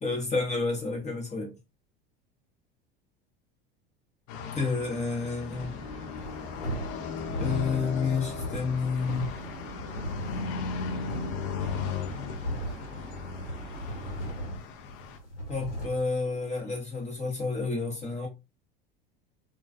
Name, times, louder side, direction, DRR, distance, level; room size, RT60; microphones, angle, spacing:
voice 1, 0.0-1.5 4.5-5.8 7.4-9.3 15.5-18.3, left 4 dB, 25° left, 0.8 m, -30 dB
sound 1, 4.3-15.2, left 5 dB, 50° left, 0.6 m, -37 dB
sound 2, 5.5-14.2, right 2 dB, 25° right, 0.7 m, -45 dB
sound 3, 6.2-16.1, equal, 75° left, 1.1 m, -38 dB
2.3 x 2.3 x 2.4 m
hypercardioid pair, 80°, 30 cm